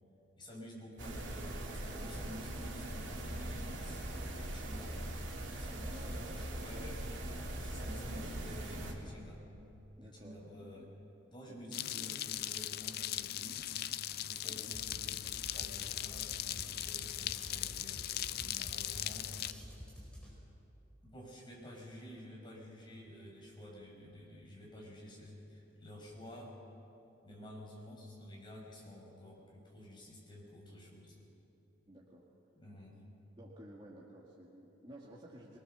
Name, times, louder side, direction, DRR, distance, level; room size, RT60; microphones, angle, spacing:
voice 1, 0.4-4.0 4.4-5.0 5.5-9.4 10.0-10.9 11.3-13.6 14.2-19.3 21.0-26.6 27.2-31.2 32.6-33.1, left 1 dB, 25° left, -2 dB, 6.0 m, -50 dB
sound 1, 1.0-8.9, right 1 dB, 70° right, 3.0 m, -41 dB
voice 2, 5.8-6.5 6.7-7.0 10.0-10.4 10.7-10.9 11.5-11.7 14.4-14.8 31.9-32.3 33.4-35.6, right 1 dB, 25° right, -4 dB, 1.9 m, -54 dB
sound 2, 11.7-19.5, left 13 dB, 50° left, 0.4 m, -39 dB
sound 3, 14.7-20.6, equal, 5° left, 5.3 m, -51 dB
24.0 x 19.5 x 6.9 m, 3.0 s
head